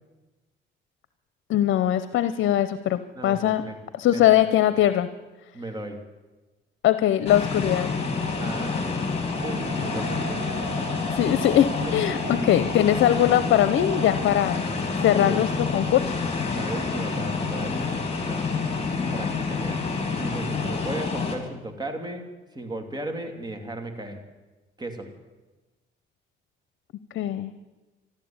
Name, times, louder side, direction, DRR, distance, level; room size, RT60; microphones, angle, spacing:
voice 1, 1.5-3.6 4.0-5.1 6.8-7.9 11.1-14.7 15.0-16.1 27.1-27.5, left 12 dB, 75° left, 13 dB, 0.7 m, -21 dB
voice 2, 3.1-3.8 4.1-4.4 4.6-4.7 5.5-6.1 8.3-9.0 9.4-10.4 11.9-12.0 12.5-12.6 15.2-15.5 16.5-18.4 19.1-22.3 22.5-24.2 24.8-25.1, right 1 dB, 20° right, 5 dB, 2.7 m, -35 dB
sound 1, 7.3-21.4, left 4 dB, 30° left, 3.5 m, -28 dB
sound 2, 9.4-14.4, right 6 dB, 45° right, 0.8 m, -39 dB
13.5 x 12.0 x 8.7 m, 1.2 s
cardioid pair, 90°, 20 cm